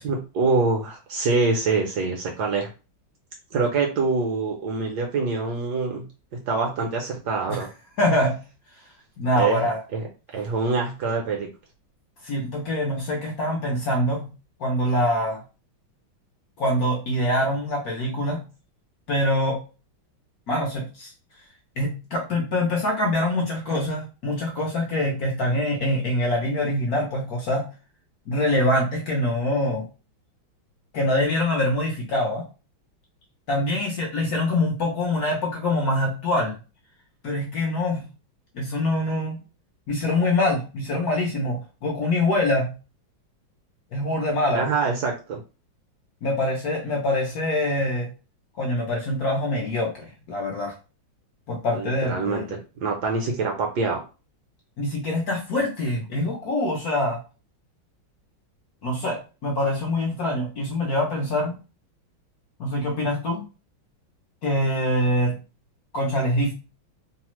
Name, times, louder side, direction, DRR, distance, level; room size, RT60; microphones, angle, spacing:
voice 1, 0.0-2.7 3.5-6.0 6.5-7.7 9.4-10.1 10.3-11.5 44.5-45.4 51.7-54.0, right 4 dB, 70° right, 1 dB, 1.0 m, -25 dB
voice 2, 8.0-8.4 9.2-9.8 12.2-14.3 14.6-15.4 16.6-18.4 19.1-19.6 20.5-21.1 21.8-27.7 28.3-29.9 30.9-32.5 33.5-36.5 37.2-38.1 38.5-39.4 39.9-42.8 43.9-44.6 46.2-48.1 48.6-50.7 51.5-52.6 54.8-57.2 58.8-61.6 62.6-63.5 64.4-65.4 65.9-66.5, left 1 dB, 65° left, -1 dB, 1.0 m, -24 dB
3.2 x 2.0 x 3.0 m, 0.32 s
omnidirectional pair, 2.2 m